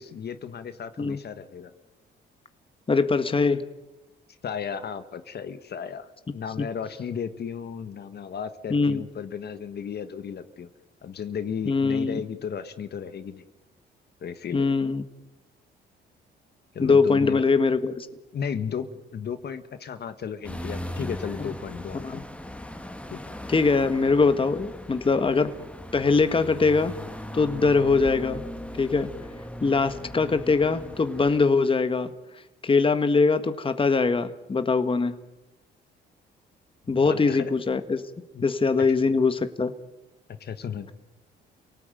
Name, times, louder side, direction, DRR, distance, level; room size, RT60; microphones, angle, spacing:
voice 1, 0.0-1.7 4.4-10.7 11.0-13.4 14.2-14.7 16.7-17.4 18.3-22.3 23.1-23.2 36.9-37.5 38.3-38.4 38.8-38.9 40.3-40.9, left 7 dB, 55° left, 10 dB, 1.5 m, -34 dB
voice 2, 2.9-3.6 6.6-6.7 8.7-9.0 11.7-12.2 14.5-15.0 16.8-18.1 22.0-22.2 23.5-25.5 25.9-26.9 27.3-28.4 28.8-29.1 29.6-32.1 32.6-35.2 36.9-38.0 38.4-39.7, left 4 dB, 25° left, 10 dB, 1.5 m, -22 dB
sound 1, 20.4-31.4, left 1 dB, 5° left, 1.8 m, -39 dB
28.5 x 18.5 x 9.2 m, 1.0 s
cardioid pair, 90°, 20 cm